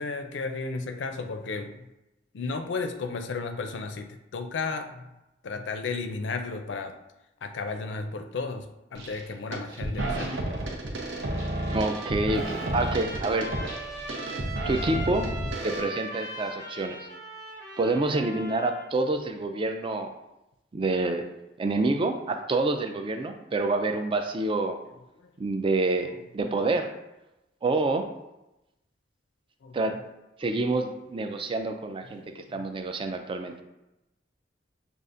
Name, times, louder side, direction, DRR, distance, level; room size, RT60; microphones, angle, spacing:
voice 1, 0.0-1.9 2.3-5.1 5.4-7.0 7.4-10.5 25.2-25.3 26.1-26.2 29.6-29.8 30.5-30.6 31.2-31.3 32.0-32.6, left 4 dB, 85° left, 7 dB, 0.4 m, -34 dB
sound 1, 8.9-9.2 9.5-15.8, right 1 dB, 80° right, 0.9 m, -32 dB
Trumpet, 11.3-18.9, right 1 dB, 50° right, 1.0 m, -40 dB
voice 2, 11.7-13.5 14.6-15.3 15.6-17.0 17.8-20.1 20.7-21.3 21.6-24.8 25.4-26.9 27.6-28.0 29.7-30.0 30.4-33.5, right 2 dB, 30° right, 6 dB, 0.4 m, -27 dB
6.6 x 2.4 x 2.5 m, 0.94 s
head